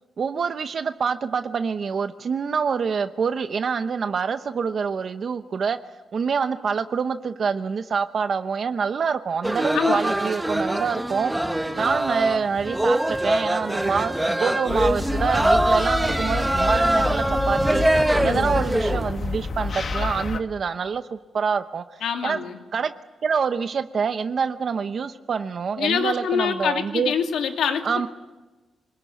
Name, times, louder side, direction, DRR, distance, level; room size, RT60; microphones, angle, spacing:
voice 1, 0.2-5.8 6.1-11.3 11.8-17.9 18.2-22.4 22.7-22.9 23.2-27.1 27.8-28.1, right 6 dB, 50° right, 9 dB, 0.9 m, -26 dB
sound 1, 9.4-19.1, right 1 dB, 10° right, 1.1 m, -23 dB
voice 2, 9.7-10.0 18.2-18.6 22.0-22.6 25.8-28.1, left 7 dB, 85° left, 4 dB, 2.5 m, -25 dB
sound 2, 14.7-20.4, left 3 dB, 45° left, 1.5 m, -29 dB
26.0 x 21.0 x 9.5 m, 1.2 s
cardioid pair, 130°, 0 cm